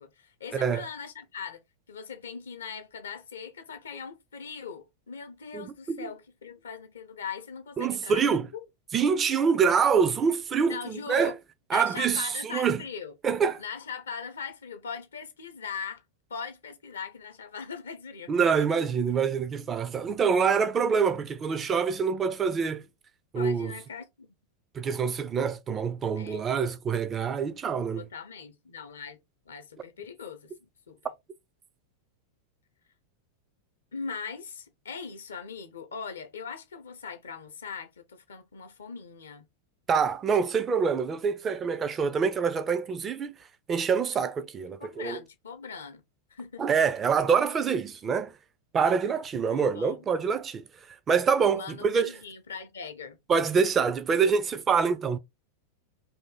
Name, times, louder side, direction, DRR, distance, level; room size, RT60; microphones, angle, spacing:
voice 1, 0.0-1.6 1.9-8.6 10.7-11.4 11.7-13.1 13.6-16.0 16.3-18.3 18.6-18.7 23.3-24.3 26.2-26.4 27.9-31.0 33.9-39.4 44.8-46.0 46.3-46.8 49.5-50.1 51.5-53.2, left 6 dB, 70° left, 0.7 m, -40 dB
voice 2, 0.5-0.8 5.5-6.1 7.8-8.5 8.9-11.3 11.7-12.8 13.2-13.6 18.3-22.8 23.3-23.7 24.7-28.0 39.9-43.3 43.7-45.2 46.6-48.3 48.7-50.6 51.1-52.1 53.3-55.2, right 6 dB, 25° right, 0.5 m, -25 dB
2.7 x 2.6 x 3.7 m
figure-of-eight pair, 90°, 0 cm